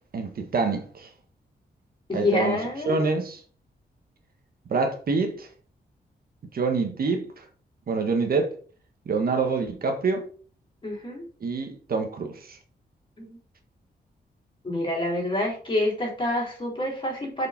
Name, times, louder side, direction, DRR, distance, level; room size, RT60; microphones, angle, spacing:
voice 1, 0.1-1.1 2.1-3.4 4.7-5.5 6.5-7.4 7.9-8.5 9.0-10.3 11.4-12.6, right 4 dB, 60° right, 1.5 m, -26 dB
voice 2, 2.1-3.0 10.8-11.2 13.2-13.4 14.6-17.5, left 1 dB, 30° left, 3.8 m, -27 dB
7.0 x 5.2 x 5.8 m
wide cardioid pair, 150°, 17 cm